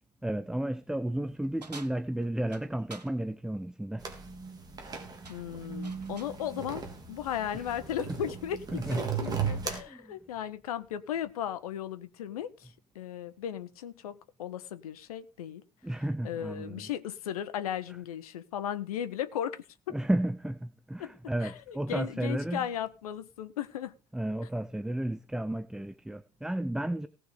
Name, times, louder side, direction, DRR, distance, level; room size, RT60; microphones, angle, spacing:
voice 1, 0.2-4.2 7.5-7.6 8.7-10.1 15.8-16.9 19.9-22.7 24.1-27.1, right 1 dB, 5° right, 0.7 m, -33 dB
sound 1, 1.6-3.2 4.6-4.9 5.2-6.4, right 4 dB, 85° right, 1.2 m, -49 dB
sound 2, 4.0-9.8, right 6 dB, 20° right, 3.6 m, -37 dB
voice 2, 5.3-15.6 16.2-20.0 21.0-21.1 21.4-23.9, left 10 dB, 65° left, 1.4 m, -36 dB
18.0 x 6.2 x 5.1 m
figure-of-eight pair, 80°, 20 cm